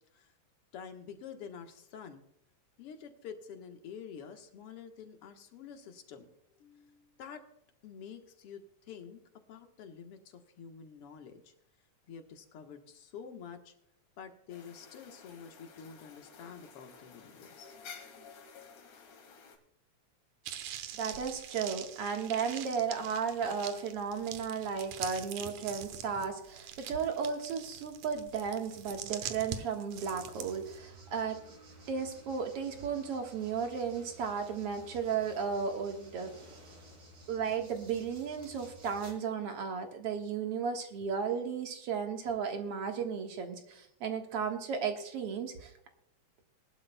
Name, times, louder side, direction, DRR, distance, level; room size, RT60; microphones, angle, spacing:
voice 1, 0.7-2.2 2.8-6.3 6.6-7.4 7.8-9.2 9.5-11.5 12.1-13.7 14.2-17.8, left 7 dB, 55° left, 5 dB, 2.0 m, -48 dB
sound 1, 14.5-19.6, left 6 dB, 85° left, 3.3 m, -52 dB
sound 2, 20.4-30.8, right 9 dB, 75° right, 2.2 m, -44 dB
voice 2, 20.9-31.4 31.9-36.3 37.3-45.7, right 6 dB, 55° right, 4 dB, 2.2 m, -34 dB
sound 3, 29.9-39.1, right 1 dB, 30° right, 3.1 m, -54 dB
21.0 x 11.5 x 2.2 m, 0.80 s
omnidirectional pair, 3.4 m